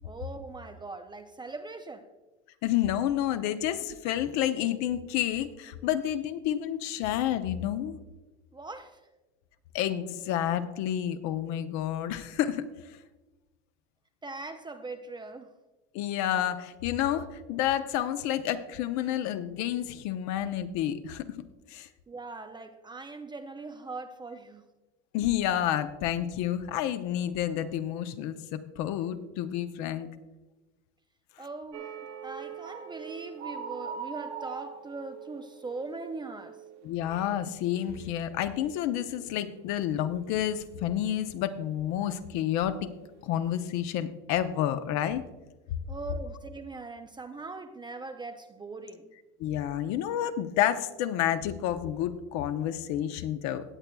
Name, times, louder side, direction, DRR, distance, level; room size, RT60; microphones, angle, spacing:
voice 1, 0.0-2.1 8.5-9.0 14.2-15.5 22.1-24.6 31.4-31.9 32.2-36.6 45.9-49.1, right 3 dB, 15° right, 0.5 m, -41 dB
voice 2, 2.6-8.0 9.7-12.7 15.9-21.3 21.7-21.9 25.1-30.1 36.8-42.9 43.2-45.2 49.4-53.6, left 11 dB, 55° left, 0.8 m, -29 dB
sound 1, 31.7-37.5 37.8-38.1 38.5-38.8, right 7 dB, 85° right, 1.7 m, -42 dB
18.0 x 7.9 x 2.3 m
hypercardioid pair, 105°, 34 cm